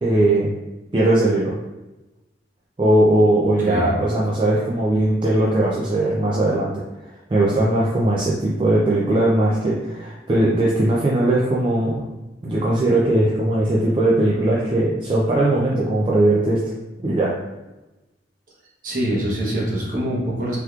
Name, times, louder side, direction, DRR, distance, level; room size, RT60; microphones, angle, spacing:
voice 1, 0.0-0.5 0.9-1.5 2.8-6.7 7.3-12.0 12.4-16.6 17.0-17.3, right 1 dB, 30° right, -5 dB, 0.4 m, -19 dB
voice 2, 18.8-20.6, right 1 dB, 50° right, -5 dB, 1.0 m, -24 dB
3.4 x 3.0 x 2.3 m, 1.1 s
head